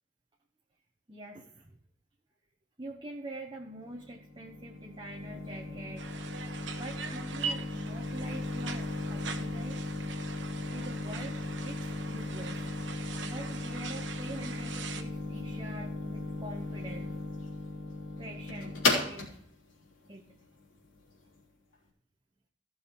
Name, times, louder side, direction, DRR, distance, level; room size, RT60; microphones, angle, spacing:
voice 1, 1.1-1.8 2.8-6.1 6.7-9.8 10.7-12.6 13.2-17.2 18.2-18.8 19.1-19.3 20.1-20.2, right 1 dB, 25° right, 0 dB, 1.1 m, -45 dB
sound 1, 3.7-21.4, left 2 dB, 85° left, 3.4 m, -36 dB
sound 2, 6.0-15.0, right 6 dB, 70° right, 1.2 m, -42 dB
16.0 x 6.4 x 4.7 m, 0.64 s
head